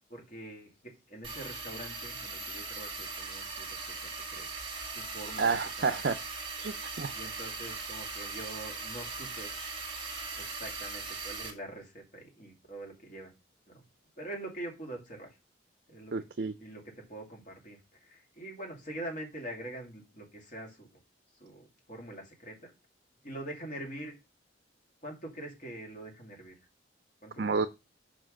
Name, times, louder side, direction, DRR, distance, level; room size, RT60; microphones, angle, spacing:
voice 1, 0.1-4.5 4.9-6.0 7.1-9.6 10.3-13.3 13.7-13.8 14.2-15.4 15.9-16.3 16.6-20.9 21.3-22.7 23.2-24.1 25.0-26.6 27.2-27.6, right 1 dB, 40° left, 2.4 m, -44 dB
sound 1, 1.2-11.5, right 4 dB, 25° right, 1.9 m, -39 dB
voice 2, 5.4-6.1 6.6-7.1 16.1-16.5 27.4-27.7, right 4 dB, 55° right, 0.4 m, -30 dB
5.9 x 5.0 x 6.4 m
head